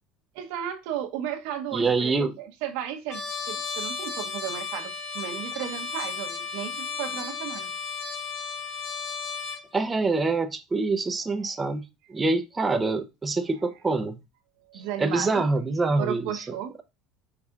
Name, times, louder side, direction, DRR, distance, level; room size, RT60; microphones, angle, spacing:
voice 1, 0.3-7.7 11.4-11.6 13.5-13.6 14.7-15.5 16.0-16.7, right 10 dB, 80° right, 0.8 m, -34 dB
voice 2, 1.7-2.3 9.7-14.2 14.7-16.8, right 3 dB, 15° right, 0.5 m, -26 dB
Trumpet, 3.1-9.6, left 5 dB, 35° left, 2.4 m, -34 dB
4.9 x 4.1 x 2.3 m
supercardioid pair, 120°, 0 cm